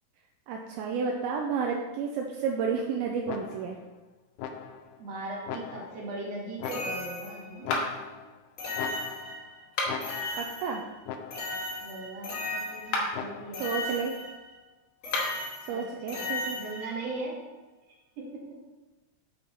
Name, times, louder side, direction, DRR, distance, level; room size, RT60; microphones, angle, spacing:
voice 1, 0.5-3.8 10.4-10.8 13.6-14.1 15.7-16.6, right 5 dB, 80° right, 1 dB, 2.4 m, -31 dB
sound 1, 3.3-3.9 4.4-5.0 5.5-6.1 6.6-7.3 7.6-8.4 8.8-9.5 9.9-10.6 11.1-11.7 13.1-13.7, left 7 dB, 90° left, 2.7 m, -39 dB
voice 2, 5.0-7.9 11.8-13.6 15.7-17.3 18.2-18.4, right 2 dB, 50° right, -4 dB, 2.5 m, -39 dB
sound 2, 6.6-7.6 8.6-9.6 10.0-11.0 11.3-13.2 13.5-14.5 15.0-17.1, left 2 dB, 45° left, 3.1 m, -36 dB
sound 3, 7.7-8.2 9.6-10.2 12.8-13.3 15.0-15.5, left 2 dB, 65° left, 2.3 m, -31 dB
7.2 x 5.2 x 4.4 m, 1.2 s
omnidirectional pair, 4.6 m